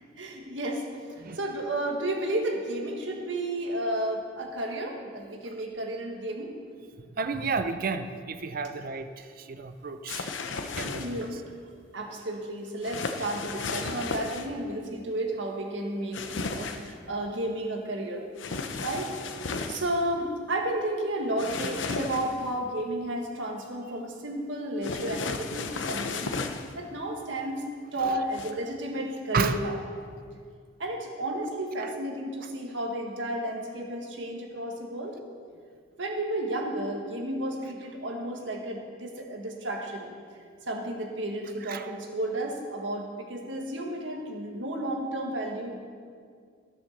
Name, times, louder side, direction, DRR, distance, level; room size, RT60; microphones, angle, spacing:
voice 1, 0.2-0.8 1.1-6.6 11.0-11.4 11.9-18.2 18.8-19.1 19.7-26.4 26.8-27.7 27.9-29.8 30.8-35.2 36.0-40.1 40.7-45.8, right 1 dB, 85° right, 1 dB, 1.8 m, -32 dB
voice 2, 7.2-10.3 10.6-11.2 28.0-28.2 29.3-29.6 31.8-31.9 41.6-41.9, right 4 dB, 50° right, 9 dB, 0.5 m, -32 dB
sound 1, 10.1-11.3 12.8-14.5 16.1-16.9 18.4-19.8 21.4-22.5 24.8-26.7 28.3-28.5, left 4 dB, 90° left, 0.8 m, -34 dB
12.5 x 6.9 x 6.6 m, 2.1 s
head